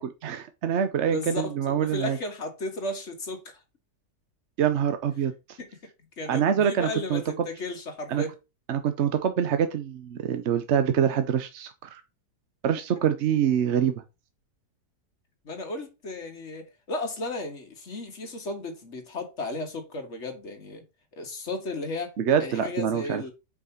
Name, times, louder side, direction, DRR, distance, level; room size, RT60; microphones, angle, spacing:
voice 1, 0.0-2.2 4.6-5.6 6.3-7.5 8.1-8.2 8.7-12.0 12.6-13.9 22.2-23.2, right 8 dB, 55° right, 0.8 m, -25 dB
voice 2, 1.1-3.6 5.6-8.4 15.5-20.8 21.1-23.3, left 2 dB, 45° left, 1.8 m, -35 dB
5.5 x 4.9 x 5.5 m
omnidirectional pair, 1.7 m